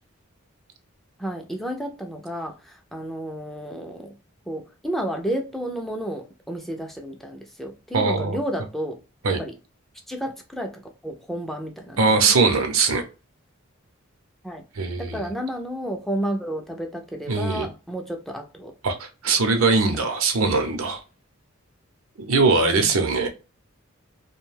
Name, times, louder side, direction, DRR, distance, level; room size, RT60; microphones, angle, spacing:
voice 1, 1.2-4.2 4.5-9.0 9.4-9.5 10.1-12.0 12.3-12.4 14.4-14.6 15.0-18.7 19.6-19.7 22.6-23.1, equal, ahead, 0.3 m, -31 dB
voice 2, 7.9-8.4 9.2-9.4 12.0-13.0 14.8-15.3 17.3-17.7 18.8-21.0 22.2-23.3, right 4 dB, 90° right, 0.6 m, -21 dB
2.6 x 2.2 x 3.2 m
head